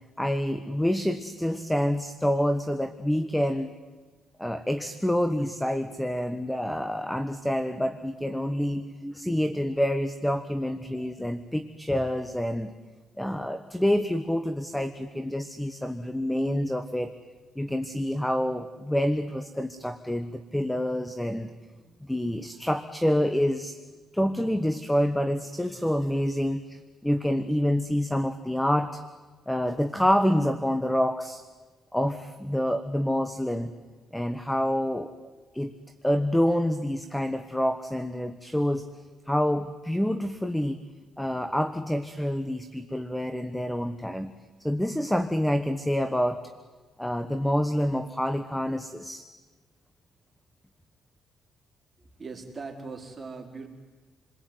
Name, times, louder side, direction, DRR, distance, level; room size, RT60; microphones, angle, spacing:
voice 1, 0.2-3.7 4.4-12.7 13.2-17.1 17.5-21.5 22.0-23.8 24.1-29.0 29.5-31.4 31.9-33.7 34.1-35.1 35.5-35.7 36.0-38.9 39.3-40.8 41.2-44.3 44.6-46.4 47.0-49.3, equal, 5° left, 11 dB, 1.3 m, -27 dB
voice 2, 52.2-53.7, right 4 dB, 30° right, 3 dB, 4.7 m, -39 dB
29.0 x 21.0 x 9.6 m, 1.3 s
cardioid pair, 90°, 0 cm